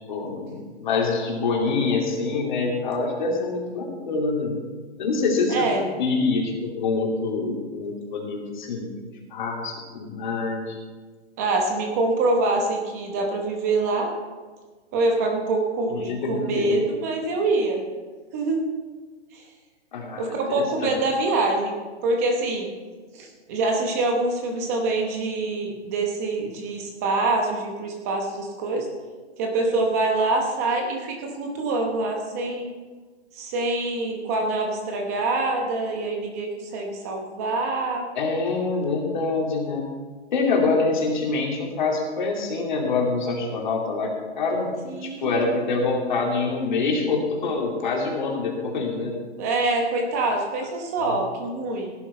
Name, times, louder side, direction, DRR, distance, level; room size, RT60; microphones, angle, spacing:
voice 1, 0.1-4.5 5.0-5.7 6.0-8.9 9.3-10.8 15.9-16.8 19.9-20.9 38.1-39.9 40.3-44.1 44.4-44.7 45.0-49.2 51.1-51.2, left 3 dB, 40° left, -1 dB, 2.7 m, -25 dB
voice 2, 5.5-5.9 11.4-14.1 14.9-17.8 18.3-18.7 19.3-19.4 20.2-21.8 22.0-22.7 23.1-28.9 29.4-32.7 33.3-38.0 44.8-45.5 49.4-51.9, right 2 dB, 15° right, 2 dB, 0.9 m, -25 dB
16.5 x 10.5 x 4.3 m, 1.4 s
hypercardioid pair, 175°, 35 cm